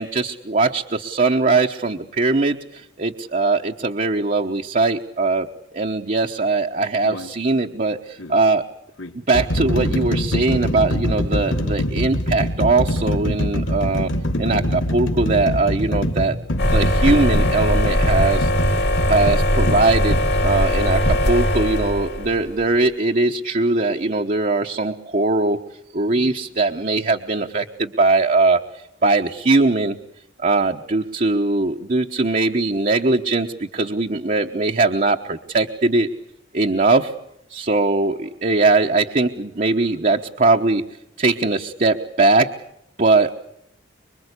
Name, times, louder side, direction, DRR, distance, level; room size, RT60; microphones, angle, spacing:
voice 1, 0.0-5.5 5.7-8.6 9.3-14.1 14.4-16.3 16.6-18.8 19.1-25.6 25.9-28.6 29.0-29.9 30.4-36.1 36.5-37.1 37.5-40.8 41.2-42.5 43.0-43.3, right 3 dB, 45° right, 3 dB, 1.1 m, -20 dB
sound 1, 7.0-7.3 8.2-8.3 9.0-20.3 21.1-21.2, equal, 85° left, 2.3 m, -24 dB
sound 2, 16.6-22.5, left 1 dB, 60° left, 2.7 m, -20 dB
26.0 x 24.0 x 8.3 m, 0.78 s
head